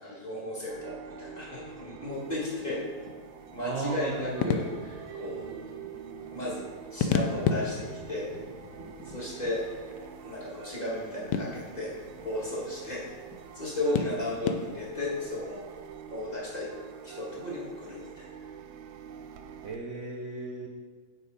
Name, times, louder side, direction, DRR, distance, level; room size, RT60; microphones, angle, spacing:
voice 1, 0.0-2.8 3.5-5.6 6.3-8.3 9.1-9.6 10.2-11.9 12.2-13.0 13.5-15.7 16.1-16.7 17.0-18.3, left 1 dB, 20° left, -5 dB, 1.7 m, -34 dB
sound 1, 0.7-19.8, right 8 dB, 75° right, 1.3 m, -46 dB
sound 2, 2.1-15.5, left 6 dB, 70° left, 1.1 m, -36 dB
voice 2, 3.6-4.5 19.6-20.7, right 3 dB, 60° right, 0 dB, 0.8 m, -35 dB
8.7 x 4.7 x 4.9 m, 1.5 s
omnidirectional pair, 2.2 m